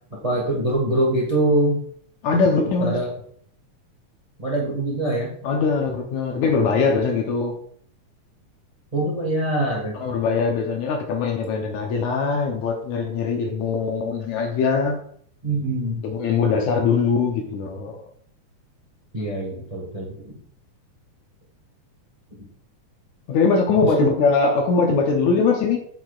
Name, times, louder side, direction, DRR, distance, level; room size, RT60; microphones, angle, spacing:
voice 1, 0.2-1.8 2.8-3.1 4.4-5.3 8.9-9.9 15.4-16.0 19.1-20.4 23.9-24.1, right 1 dB, 40° right, -2 dB, 0.5 m, -23 dB
voice 2, 2.2-3.0 5.4-7.5 9.9-15.0 16.0-18.0 23.3-25.8, left 4 dB, 70° left, 2 dB, 2.0 m, -21 dB
8.5 x 6.2 x 2.4 m, 0.62 s
omnidirectional pair, 3.7 m